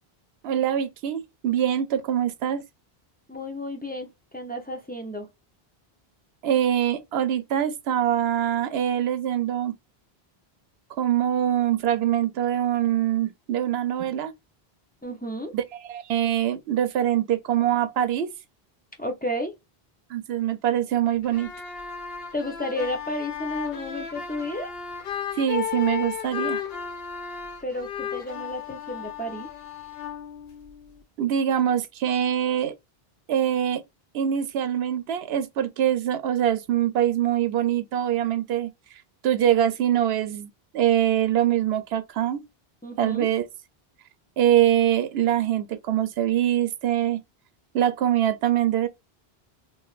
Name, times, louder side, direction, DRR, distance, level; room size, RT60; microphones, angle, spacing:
voice 1, 0.4-2.6 6.4-9.7 11.0-14.3 15.5-18.3 20.1-21.5 25.3-26.6 31.2-32.7 33.3-33.8 34.1-38.7 39.2-40.5 40.7-42.4 43.0-43.4 44.4-47.2 47.7-48.9, right 10 dB, 80° right, 0.8 m, -24 dB
voice 2, 3.3-5.3 15.0-15.5 19.0-19.5 22.3-24.7 27.6-29.5 42.8-43.3, left 1 dB, 15° left, 0.3 m, -32 dB
sound 1, 21.2-31.0, left 8 dB, 70° left, 0.9 m, -34 dB
3.0 x 2.5 x 2.3 m
omnidirectional pair, 1.0 m